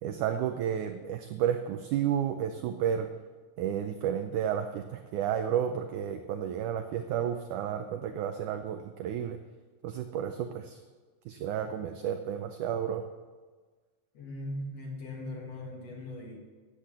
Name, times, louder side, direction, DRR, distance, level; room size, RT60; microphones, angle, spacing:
voice 1, 0.0-3.1 3.6-9.4 9.8-10.8 11.3-13.0, right 9 dB, 90° right, 7 dB, 1.7 m, -31 dB
voice 2, 14.1-16.4, left 1 dB, 50° left, -1 dB, 2.4 m, -39 dB
10.0 x 8.5 x 7.6 m, 1.4 s
omnidirectional pair, 4.2 m